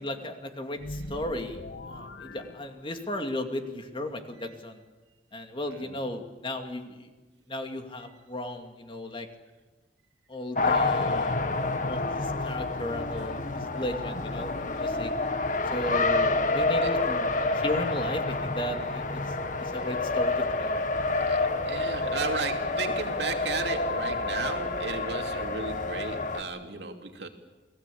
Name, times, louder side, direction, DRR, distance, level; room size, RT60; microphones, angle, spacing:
voice 1, 0.0-4.8 5.3-7.1 7.5-9.3 10.3-11.4 11.8-15.1 15.7-19.2 19.6-20.8, left 1 dB, 30° left, 5 dB, 2.4 m, -35 dB
sound 1, 0.8-3.3, left 1 dB, 75° left, 1.4 m, -42 dB
Race car auto racing, 10.6-26.4, left 3 dB, 45° left, 1.5 m, -28 dB
voice 2, 14.9-15.3 16.4-16.9 17.4-17.6 19.7-19.8 21.1-27.3, right 4 dB, 70° right, 4 dB, 2.8 m, -36 dB
29.0 x 20.0 x 8.5 m, 1.2 s
head